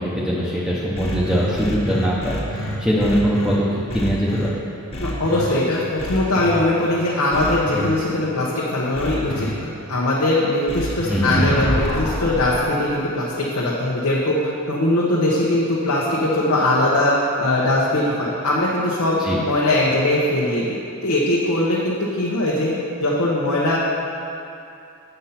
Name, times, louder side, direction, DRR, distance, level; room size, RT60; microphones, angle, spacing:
voice 1, 0.0-3.6 3.9-4.6 11.1-11.5 19.2-19.4, equal, 5° right, -8 dB, 0.7 m, -22 dB
sound 1, 1.0-3.6 3.9-4.5 4.9-5.5 6.0-6.6 7.3-7.9 9.0-9.5 10.7-12.6, equal, 25° left, 1.1 m, -27 dB
voice 2, 5.0-22.7 23.0-23.8, left 1 dB, 85° left, -6 dB, 1.1 m, -21 dB
8.1 x 5.5 x 5.8 m, 2.6 s
head